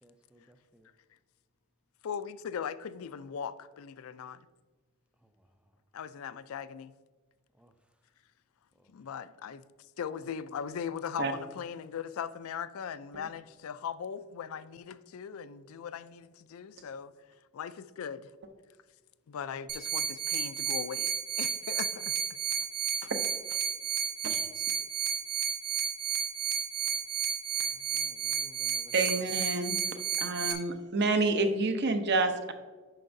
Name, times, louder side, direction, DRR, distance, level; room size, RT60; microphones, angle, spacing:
voice 1, 0.0-0.9 7.6-7.7 27.6-28.9, right 1 dB, 5° right, 0.4 m, -59 dB
voice 2, 2.0-4.5 5.9-6.9 8.9-9.6 10.0-17.1 17.5-18.3 19.3-22.2 23.0-23.1, left 7 dB, 65° left, 0.4 m, -39 dB
sound 1, 19.7-30.5, right 7 dB, 90° right, 0.9 m, -32 dB
voice 3, 28.9-29.8 30.2-32.5, right 3 dB, 50° right, 0.7 m, -28 dB
9.1 x 5.9 x 2.6 m
head